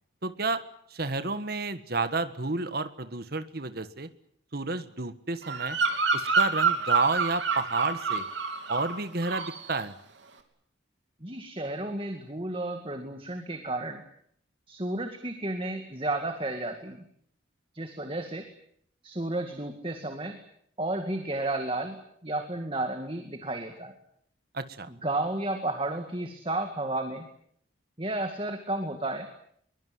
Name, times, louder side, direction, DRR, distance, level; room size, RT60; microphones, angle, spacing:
voice 1, 0.2-0.6 0.9-4.1 4.5-5.8 6.1-8.2 8.7-9.9 24.5-24.9, right 3 dB, 50° right, 11 dB, 1.5 m, -30 dB
Bird vocalization bird call bird song, 5.4-9.0 9.2-9.7, right 4 dB, 65° right, 3.3 m, -27 dB
voice 2, 11.2-14.0 14.7-17.0 17.7-18.5 19.0-20.4 20.8-22.0 22.2-23.9 24.9-27.3 28.0-29.3, right 2 dB, 25° right, 6 dB, 2.1 m, -32 dB
23.0 x 22.5 x 9.5 m, 0.69 s
head